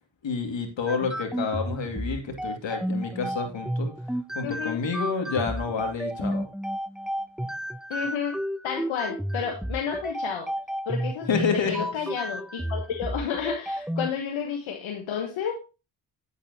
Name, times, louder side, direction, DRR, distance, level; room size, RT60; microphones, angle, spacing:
voice 1, 0.2-4.0 4.3-6.5 11.3-11.8, left 5 dB, 70° left, 4 dB, 2.5 m, -29 dB
sound 1, 0.9-14.1, equal, ahead, 0.4 m, -32 dB
voice 2, 4.4-4.8 7.9-8.4 8.6-10.5 10.9-15.5, left 7 dB, 90° left, 1 dB, 1.3 m, -31 dB
9.1 x 8.1 x 2.9 m, 0.30 s
supercardioid pair, 45°, 46 cm